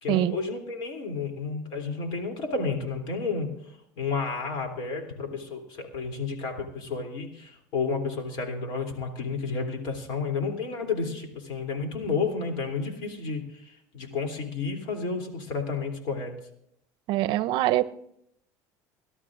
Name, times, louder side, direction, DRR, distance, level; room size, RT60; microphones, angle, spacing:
voice 1, 0.0-3.5 4.0-16.3, left 4 dB, 65° left, 3 dB, 3.0 m, -31 dB
voice 2, 17.1-17.9, right 15 dB, 65° right, 16 dB, 0.5 m, -24 dB
25.0 x 12.0 x 2.5 m, 0.72 s
supercardioid pair, 110°, 9 cm